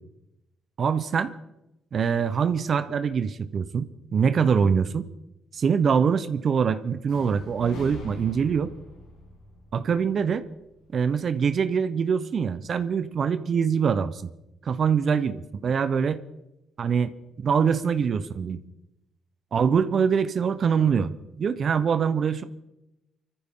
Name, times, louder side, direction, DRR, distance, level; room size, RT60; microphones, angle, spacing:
voice 1, 0.8-1.3 1.9-5.1 5.5-8.7 9.7-10.5 10.9-14.3 14.6-16.2 16.8-17.1 17.4-18.6 19.5-21.1 21.4-22.4, right 6 dB, 55° right, 12 dB, 0.9 m, -24 dB
sound 1, 7.1-11.0, left 2 dB, 85° left, 7.6 m, -43 dB
22.0 x 14.5 x 3.8 m, 0.94 s
cardioid pair, 70°, 0 cm